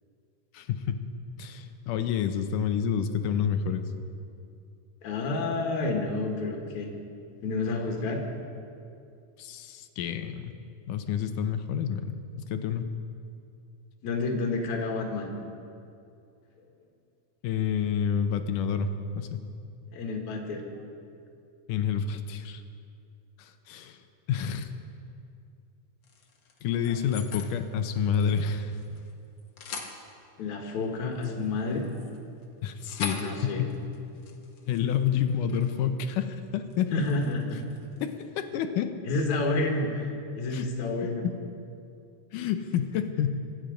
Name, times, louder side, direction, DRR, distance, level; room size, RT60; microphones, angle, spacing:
voice 1, 0.5-1.0 1.4-3.8 9.4-10.5 10.9-12.8 17.4-18.9 19.1-19.4 21.7-22.6 23.4-24.0 24.3-24.7 26.6-28.7 32.6-33.7 34.7-36.9 38.0-38.9 40.5-40.7 42.3-43.4, left 8 dB, 85° left, 8 dB, 2.5 m, -29 dB
voice 2, 5.0-6.9 7.4-8.2 14.0-15.3 19.9-20.6 30.4-31.9 33.2-33.7 36.9-37.6 39.0-41.3, left 3 dB, 65° left, 1 dB, 3.0 m, -29 dB
sound 1, 26.0-27.5 27.9-29.1 29.4-30.0 30.8-35.8 36.1-36.4 36.7-38.2, left 4 dB, 50° left, 1.5 m, -43 dB
24.5 x 10.0 x 5.1 m, 2.5 s
omnidirectional pair, 3.6 m